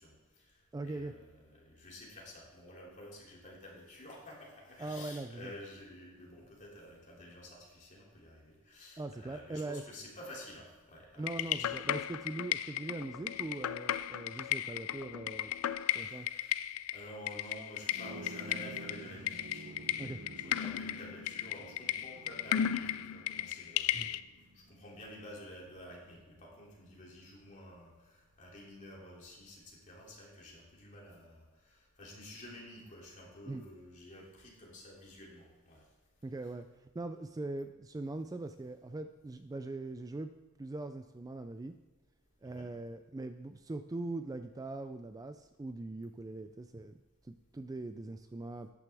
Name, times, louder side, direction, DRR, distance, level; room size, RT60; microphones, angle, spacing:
voice 1, 0.0-11.7 16.0-16.6 16.9-35.8 42.4-42.7, left 1 dB, 35° left, -3 dB, 2.8 m, -51 dB
voice 2, 0.7-1.1 4.8-5.5 9.0-9.8 11.2-15.5 15.9-16.3 20.0-20.2 23.9-24.1 33.5-33.6 36.2-40.3 40.6-41.7 42.4-48.7, right 2 dB, 15° right, 9 dB, 0.3 m, -41 dB
sound 1, 11.3-24.2, left 11 dB, 70° left, 0.4 m, -35 dB
sound 2, 17.9-27.5, right 2 dB, 75° right, 0.8 m, -51 dB
12.0 x 9.7 x 3.5 m, 1.2 s
head